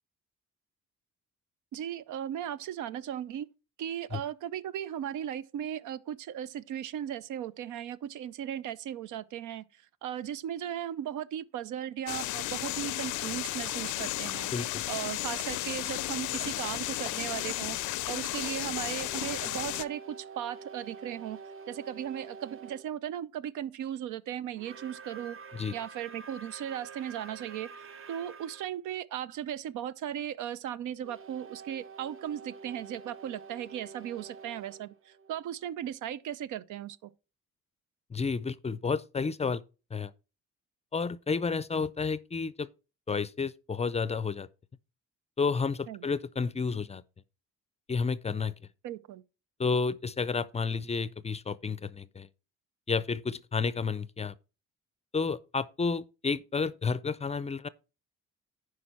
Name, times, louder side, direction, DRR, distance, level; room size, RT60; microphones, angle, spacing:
voice 1, 1.7-3.5 3.8-9.6 10.0-14.5 14.9-17.8 18.1-21.4 21.7-25.4 25.7-37.1 45.9-46.1 48.8-49.2, right 10 dB, 80° right, 0.6 m, -37 dB
sound 1, 12.1-19.9, left 16 dB, 80° left, 0.5 m, -34 dB
voice 2, 14.5-14.8 25.6-25.7 38.1-39.6 39.9-40.1 40.9-42.7 43.1-44.5 45.4-47.0 47.9-48.5 49.6-52.3 52.9-54.3 55.1-57.7, left 5 dB, 20° left, 0.4 m, -31 dB
sound 2, 19.0-22.9 24.5-28.7 31.0-35.9, right 5 dB, 45° right, 0.7 m, -48 dB
10.5 x 4.8 x 4.3 m
cardioid pair, 90°, 30 cm